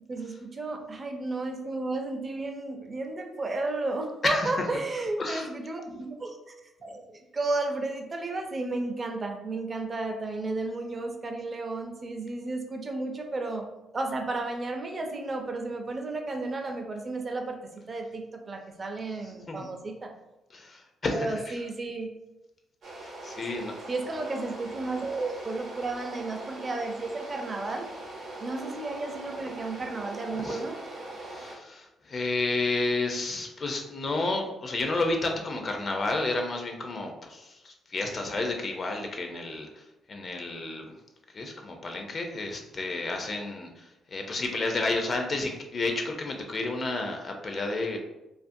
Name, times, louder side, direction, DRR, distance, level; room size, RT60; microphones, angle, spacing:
voice 1, 0.1-6.4 6.8-13.7 13.9-17.6 17.9-20.1 21.1-22.1 23.9-27.9 28.4-30.8, right 2 dB, 35° right, 3 dB, 0.4 m, -33 dB
voice 2, 20.5-21.6 23.0-23.7 30.4-30.6 31.2-40.8 41.3-48.0, left 2 dB, 45° left, 3 dB, 0.4 m, -31 dB
sound 1, 22.8-31.6, right 2 dB, 65° right, 0.7 m, -41 dB
2.4 x 2.4 x 2.5 m, 0.96 s
cardioid pair, 90°, 0 cm